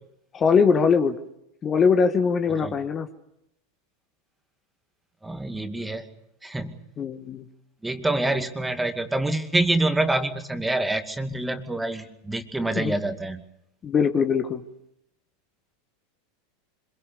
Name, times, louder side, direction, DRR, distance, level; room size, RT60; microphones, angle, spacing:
voice 1, 0.3-1.2 1.6-3.1 7.0-7.4 12.7-12.9 13.8-14.6, left 5 dB, 30° left, 8 dB, 1.6 m, -21 dB
voice 2, 5.2-6.1 6.4-6.8 7.8-13.4, right 2 dB, 10° right, 7 dB, 2.4 m, -26 dB
26.0 x 22.0 x 7.0 m, 0.81 s
hypercardioid pair, 90°, 0 cm